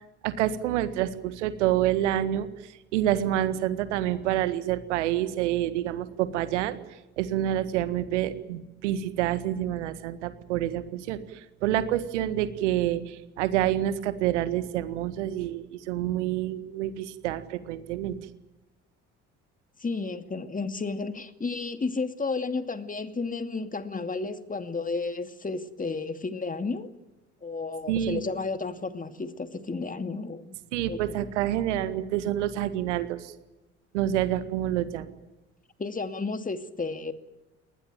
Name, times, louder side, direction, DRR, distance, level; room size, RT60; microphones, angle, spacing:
voice 1, 0.2-2.5 2.9-6.8 7.2-11.2 11.6-18.1 27.9-28.2 30.7-33.3 33.9-35.0, right 12 dB, 80° right, 1.8 m, -27 dB
voice 2, 19.8-26.9 27.4-30.5 30.9-31.3 35.8-37.1, left 4 dB, 25° left, 2.4 m, -32 dB
23.5 x 20.0 x 9.1 m
hypercardioid pair, 55°, 35 cm